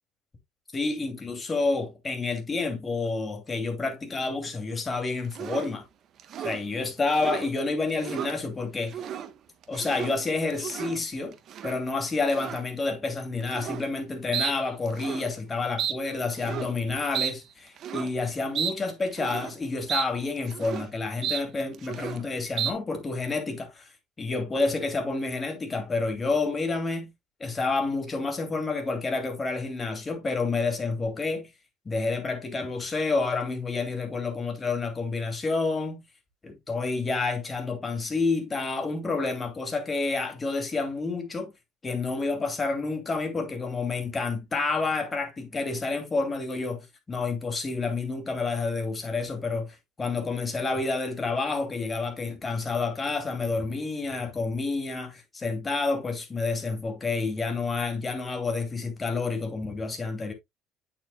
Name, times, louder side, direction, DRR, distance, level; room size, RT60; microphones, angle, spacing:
voice 1, 0.7-5.8 6.4-9.0 9.7-11.3 11.6-23.9 24.2-27.1 27.4-31.5 31.8-36.0 36.4-41.5 41.8-60.3, left 3 dB, 20° left, 2.6 m, -29 dB
sound 1, 5.3-5.7 6.2-6.6 7.1-7.5 7.9-8.3 8.8-9.3 9.6-10.2 10.5-11.0 11.5-11.8 12.3-12.6 13.5-13.9 14.3-14.5 14.9-15.3 15.8-16.0 16.3-16.7 17.1-17.3 17.8-18.1 18.6-18.7 19.1-19.5 19.9-20.1 20.4-20.9 21.2-21.4 21.7-22.2 22.6-22.7, right 9 dB, 50° right, 1.1 m, -32 dB
8.6 x 7.0 x 2.3 m
cardioid pair, 125°, 0 cm